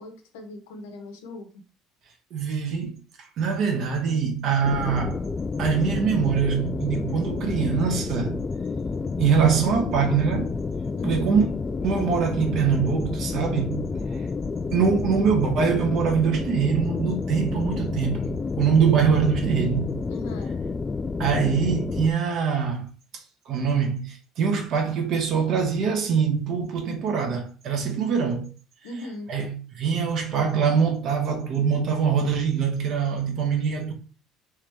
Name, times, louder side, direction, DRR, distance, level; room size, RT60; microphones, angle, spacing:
voice 1, 0.0-1.6 11.0-11.4 20.1-20.5 28.8-29.3, left 1 dB, 85° left, 0.9 m, -38 dB
voice 2, 2.3-2.9 3.4-5.2 5.6-8.3 9.2-10.5 11.0-11.5 11.8-13.8 14.7-18.3 18.6-19.9 21.2-22.9 23.5-28.5 29.3-33.9, right 6 dB, 60° right, 1.3 m, -23 dB
sound 1, 4.6-22.1, left 4 dB, 25° left, 0.3 m, -29 dB
3.5 x 3.1 x 3.5 m
supercardioid pair, 85°, 0 cm